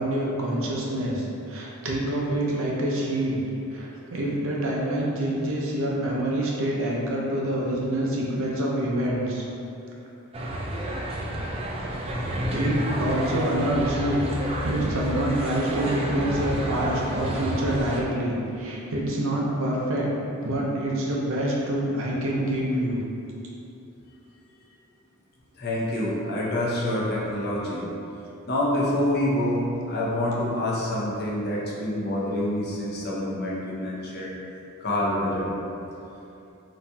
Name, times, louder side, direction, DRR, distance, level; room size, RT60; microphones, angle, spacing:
voice 1, 0.0-3.4 3.7-9.5 12.5-14.2 14.6-20.1 20.4-23.0, right 1 dB, 65° right, -3 dB, 0.6 m, -26 dB
sound 1, 10.3-18.0, right 1 dB, 25° right, 0.3 m, -30 dB
voice 2, 25.6-27.8 28.5-34.3 34.8-35.5, left 1 dB, 50° left, -5 dB, 0.6 m, -26 dB
4.0 x 2.7 x 2.3 m, 2.8 s
head